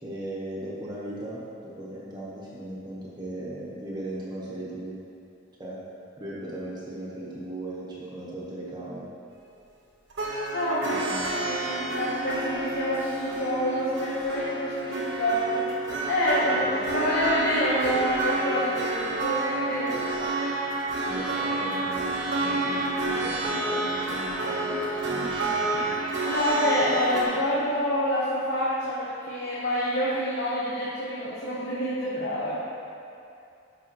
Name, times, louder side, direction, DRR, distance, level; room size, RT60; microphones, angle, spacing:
voice 1, 0.0-5.0 5.6-5.8 6.2-9.1 10.8-11.3 16.5-16.8 21.0-25.9, right 1 dB, 25° right, -7 dB, 1.2 m, -37 dB
sound 1, 10.1-27.2, right 2 dB, 85° right, 1.2 m, -29 dB
voice 2, 10.5-15.8 16.1-16.7 16.9-20.1 26.2-32.6, equal, 70° left, -7 dB, 1.1 m, -27 dB
11.5 x 4.9 x 3.1 m, 2.6 s
head